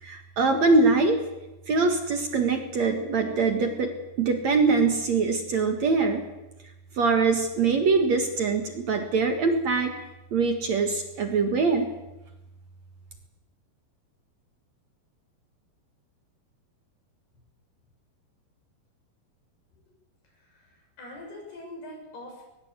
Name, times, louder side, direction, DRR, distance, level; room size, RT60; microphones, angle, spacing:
voice 1, 0.0-1.2 1.7-3.9 4.2-6.2 7.0-9.9 10.3-11.9, right 4 dB, 50° right, 5 dB, 2.5 m, -23 dB
voice 2, 20.2-22.4, left 1 dB, 75° left, 1 dB, 9.1 m, -44 dB
21.0 x 20.5 x 8.2 m, 0.98 s
omnidirectional pair, 4.6 m